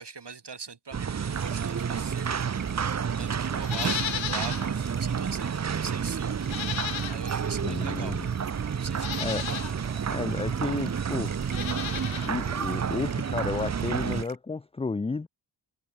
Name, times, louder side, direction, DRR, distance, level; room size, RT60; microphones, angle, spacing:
voice 1, 0.0-6.4 7.1-8.2 8.7-9.4, right 5 dB, 60° right, 4.0 m, -42 dB
sound 1, 0.9-14.2, right 7 dB, 35° right, 0.6 m, -30 dB
sound 2, 1.3-14.4, right 7 dB, 80° right, 2.6 m, -48 dB
Livestock farm animals working animals, 3.6-4.7 5.1-5.2 6.4-7.5 8.3-8.4 8.9-9.7 11.4-12.3 12.6-12.7, left 10 dB, 75° left, 0.8 m, -34 dB
voice 2, 7.6-8.3 9.2-9.6 10.1-11.3 12.2-15.3, left 4 dB, 15° left, 0.4 m, -32 dB
wide cardioid pair, 80°, 47 cm